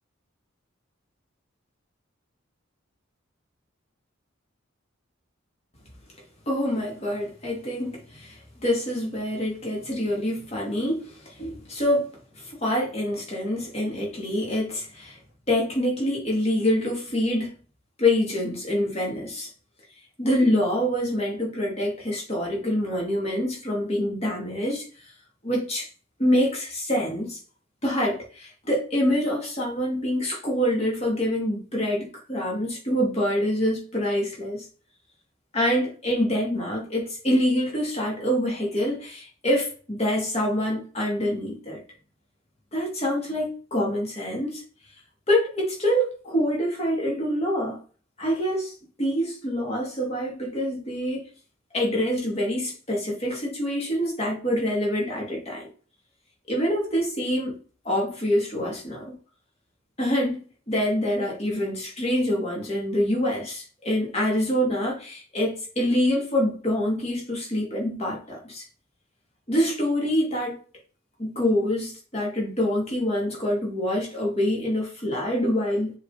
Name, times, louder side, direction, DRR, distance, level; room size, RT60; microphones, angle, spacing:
voice 1, 6.5-15.2 15.5-17.5 18.0-19.5 20.2-24.8 25.4-25.9 26.2-27.4 27.8-34.7 35.5-41.8 42.7-44.6 45.3-47.8 48.2-48.7 49.0-51.3 51.7-55.7 56.5-57.6 57.8-59.1 60.0-68.6 69.5-70.6 71.2-75.9, equal, 30° left, -2 dB, 2.6 m, -26 dB
7.0 x 4.1 x 4.2 m, 0.40 s
head